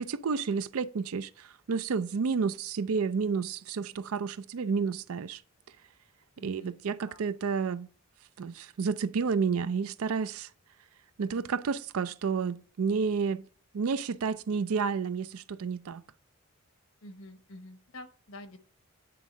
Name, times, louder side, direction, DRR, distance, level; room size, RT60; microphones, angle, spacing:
voice 1, 0.0-5.4 6.4-7.9 8.4-10.5 11.2-13.4 13.7-16.0, right 5 dB, 80° right, 0.4 m, -30 dB
voice 2, 6.4-7.2 17.0-18.6, left 1 dB, 75° left, 1.0 m, -48 dB
9.5 x 3.6 x 6.2 m
head